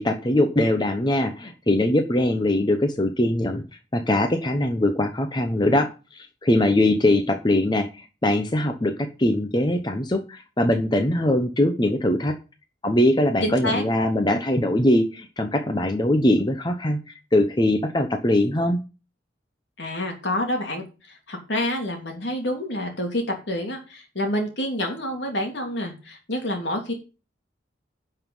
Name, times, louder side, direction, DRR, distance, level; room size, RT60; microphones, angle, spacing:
voice 1, 0.0-3.6 3.9-12.3 12.8-18.8, left 1 dB, 25° left, 6 dB, 0.8 m, -22 dB
voice 2, 13.4-13.8 19.8-20.8 21.3-26.9, left 1 dB, 70° left, 3 dB, 3.1 m, -28 dB
11.0 x 5.6 x 5.5 m, 0.32 s
head